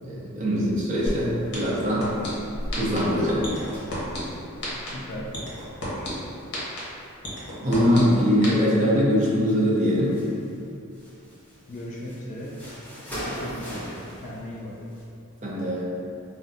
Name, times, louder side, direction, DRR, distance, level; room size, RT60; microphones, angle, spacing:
voice 1, 0.0-2.1 2.8-3.4 7.6-10.1 15.4-15.9, equal, 35° right, -6 dB, 0.6 m, -22 dB
sound 1, 1.1-1.2 1.5-2.3 2.7-3.0 3.4-4.2 4.6-4.9 5.3-6.1 6.5-6.8 7.2-8.0 8.4-8.5, left 2 dB, 55° left, 0.9 m, -31 dB
sound 2, 1.1-1.5 1.8-7.3 7.8-8.8 9.1-10.6 10.9-15.0, equal, 10° left, 0.8 m, -40 dB
voice 2, 4.7-5.4 5.6-6.0 11.7-12.6 13.2-14.7, left 1 dB, 35° left, -4 dB, 0.4 m, -38 dB
2.6 x 2.1 x 3.8 m, 2.6 s
head